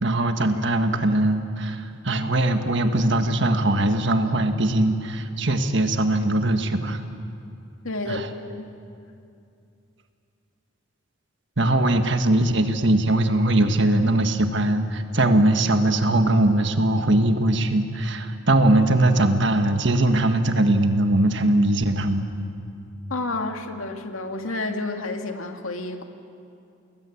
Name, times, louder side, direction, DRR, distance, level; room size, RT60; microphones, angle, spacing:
voice 1, 0.0-7.0 8.1-8.3 11.6-22.2, right 1 dB, 60° right, 7 dB, 1.7 m, -21 dB
voice 2, 7.8-8.7 23.1-26.0, left 2 dB, 85° left, 4 dB, 2.2 m, -30 dB
30.0 x 20.5 x 8.6 m, 2.5 s
head